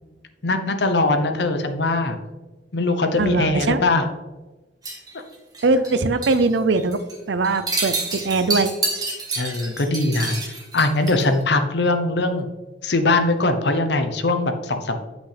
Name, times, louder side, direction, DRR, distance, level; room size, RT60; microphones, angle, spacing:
voice 1, 0.4-2.2 2.7-4.1 9.4-10.4 10.7-12.5 12.8-15.1, left 2 dB, 65° left, 7 dB, 0.8 m, -21 dB
voice 2, 3.2-3.8 5.6-7.0 7.3-8.7, right 3 dB, 75° right, 12 dB, 0.5 m, -21 dB
sound 1, 4.8-5.9 6.2-6.5 6.8-7.1 7.4-11.4, right 3 dB, 20° right, 1.6 m, -28 dB
8.1 x 6.1 x 3.3 m, 1.2 s
head